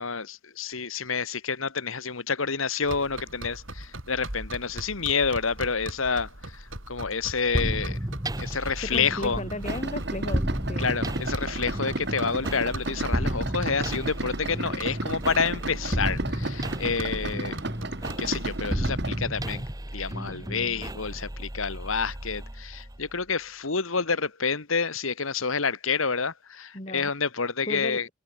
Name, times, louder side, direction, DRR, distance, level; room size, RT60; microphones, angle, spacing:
voice 1, 0.0-8.0 8.4-9.4 10.8-17.6 18.2-19.6 19.9-28.1, left 5 dB, 80° left, 1.8 m, -29 dB
sound 1, 2.8-18.6, right 1 dB, 70° right, 6.5 m, -41 dB
sound 2, 7.5-23.2, right 1 dB, 20° right, 1.7 m, -33 dB
voice 2, 8.8-10.4 10.7-10.9 26.7-27.1 27.7-28.0, left 1 dB, 35° left, 6.4 m, -34 dB
Idling, 9.6-19.2, right 2 dB, 55° right, 2.7 m, -33 dB
head